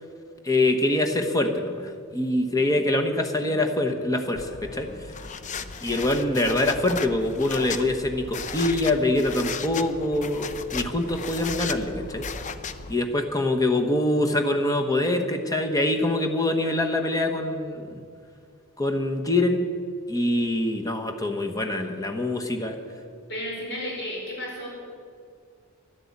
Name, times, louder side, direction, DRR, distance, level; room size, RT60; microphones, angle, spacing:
voice 1, 0.4-4.9 5.8-12.3 12.9-18.0 18.8-19.7 20.1-22.8, left 1 dB, 15° left, 4 dB, 1.1 m, -24 dB
sound 1, 4.4-13.0, left 5 dB, 35° left, 0.5 m, -35 dB
voice 2, 23.3-24.7, equal, 50° left, -3 dB, 4.6 m, -33 dB
11.5 x 10.5 x 8.4 m, 2.3 s
head